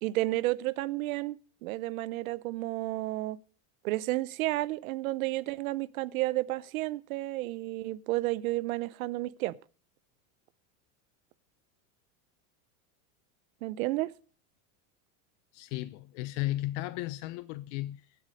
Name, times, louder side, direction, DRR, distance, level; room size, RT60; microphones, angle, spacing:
voice 1, 0.0-1.4 1.6-3.4 3.8-9.6 13.6-14.1, right 18 dB, 80° right, 0.8 m, -31 dB
voice 2, 15.5-18.2, left 16 dB, 60° left, 0.7 m, -35 dB
17.0 x 8.0 x 5.1 m
supercardioid pair, 145°, 41 cm